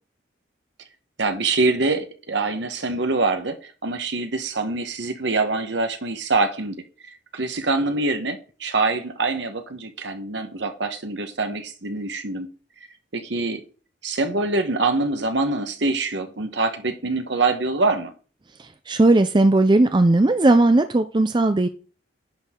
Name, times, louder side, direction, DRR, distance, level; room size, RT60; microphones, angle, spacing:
voice 1, 1.2-6.8 7.3-12.5 13.1-13.6 14.0-18.1, right 3 dB, 70° right, 1.3 m, -24 dB
voice 2, 18.9-21.7, right 2 dB, 25° right, 0.4 m, -17 dB
10.5 x 6.2 x 3.8 m
head